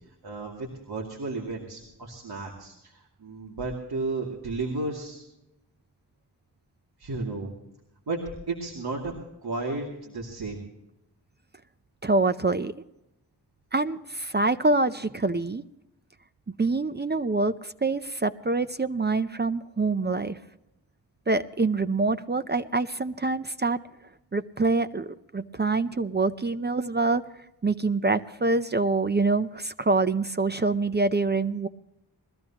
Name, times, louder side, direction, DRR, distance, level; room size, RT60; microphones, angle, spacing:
voice 1, 0.2-5.2 7.0-7.5 8.1-9.1 9.4-10.6, right 3 dB, 65° right, -2 dB, 2.6 m, -33 dB
voice 2, 12.0-12.7 13.7-15.6 16.6-20.4 21.3-23.8 24.3-27.2 27.6-31.7, right 3 dB, 25° right, 12 dB, 0.6 m, -25 dB
21.5 x 15.0 x 2.9 m, 0.86 s
wide cardioid pair, 90°, 41 cm